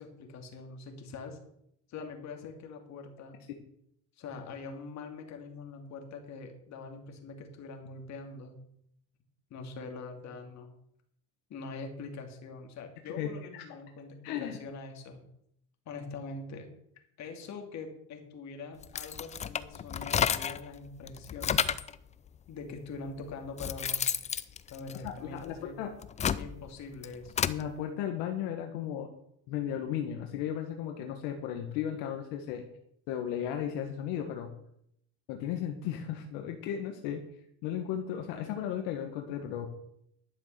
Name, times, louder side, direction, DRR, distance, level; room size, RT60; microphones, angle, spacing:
voice 1, 0.0-1.4 1.9-3.4 4.2-8.6 9.5-10.7 11.5-15.2 15.9-16.7 17.2-21.6 22.5-24.0 24.7-25.8 26.2-27.5, left 4 dB, 45° left, 4 dB, 2.7 m, -43 dB
voice 2, 13.1-13.6 14.2-14.6 25.0-25.9 27.4-29.1 29.5-32.6 33.1-34.5 35.3-37.2 37.6-39.7, left 9 dB, 75° left, 4 dB, 1.6 m, -35 dB
sound 1, 18.8-20.7 21.1-22.0 22.8-22.9 23.3-25.5 25.9-27.6, left 8 dB, 20° left, 0.4 m, -31 dB
11.5 x 7.2 x 6.8 m, 0.73 s
cardioid pair, 130°, 37 cm